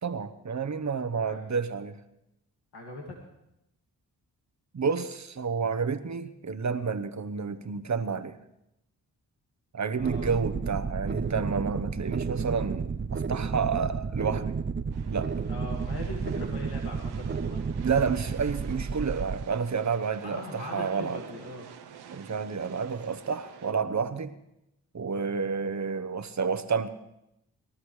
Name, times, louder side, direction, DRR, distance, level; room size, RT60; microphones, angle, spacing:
voice 1, 0.0-2.0 4.7-8.4 9.7-14.6 15.1-15.3 17.8-21.2 22.1-24.3 24.9-26.9, right 5 dB, 45° right, 10 dB, 1.0 m, -30 dB
voice 2, 2.7-3.2 10.0-10.3 15.5-17.6 20.2-21.7, left 1 dB, 75° left, 0 dB, 2.2 m, -40 dB
sound 1, 10.0-19.4, right 5 dB, 30° right, 0.6 m, -32 dB
sound 2, 14.9-23.7, right 8 dB, 80° right, 1.0 m, -49 dB
22.0 x 13.0 x 3.2 m, 0.86 s
cardioid pair, 45°, 39 cm